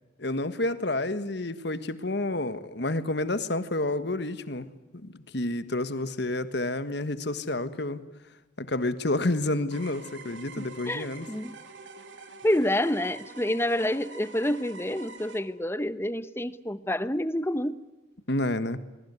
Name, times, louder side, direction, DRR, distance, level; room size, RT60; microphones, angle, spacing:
voice 1, 0.2-4.7 5.0-8.0 8.6-11.3 18.3-18.8, left 2 dB, 60° left, 1.5 m, -29 dB
sound 1, 9.7-15.4, right 3 dB, 70° right, 3.1 m, -46 dB
voice 2, 10.9-11.5 12.4-17.8, left 1 dB, 10° left, 0.8 m, -28 dB
25.5 x 22.0 x 9.6 m
head